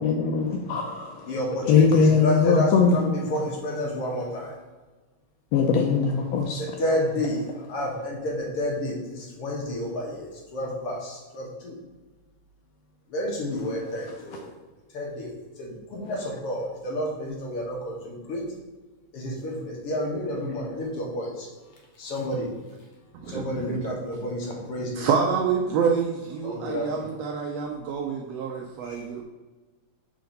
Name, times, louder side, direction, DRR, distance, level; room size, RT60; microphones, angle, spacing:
voice 1, 0.0-1.2 1.7-3.0 5.5-6.6, left 5 dB, 80° left, 3 dB, 1.6 m, -21 dB
voice 2, 1.2-4.5 6.6-11.8 13.1-14.5 14.9-18.4 19.1-21.5 22.0-22.5 23.3-25.1 26.4-27.0 28.8-29.0, equal, 60° left, -3 dB, 2.0 m, -30 dB
voice 3, 23.2-24.0 24.9-29.2, right 6 dB, 80° right, 1 dB, 1.5 m, -27 dB
4.8 x 4.4 x 5.2 m, 1.2 s
omnidirectional pair, 3.3 m